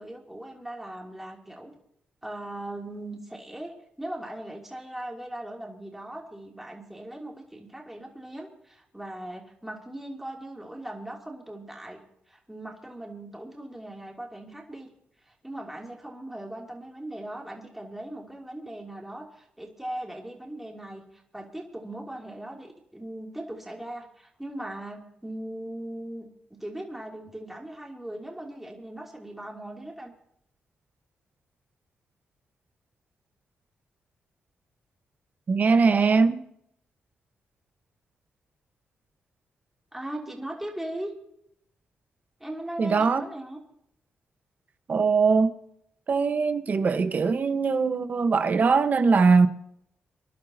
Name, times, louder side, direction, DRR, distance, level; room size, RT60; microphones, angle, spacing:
voice 1, 0.0-1.7 2.2-12.0 12.3-14.9 15.3-30.1 39.9-41.1 42.4-43.6, right 1 dB, 5° right, 2.9 m, -39 dB
voice 2, 35.5-36.4 42.8-43.2 44.9-45.5 46.1-49.5, right 4 dB, 50° right, 1.2 m, -21 dB
25.5 x 11.5 x 2.8 m
cardioid pair, 75°, 4 cm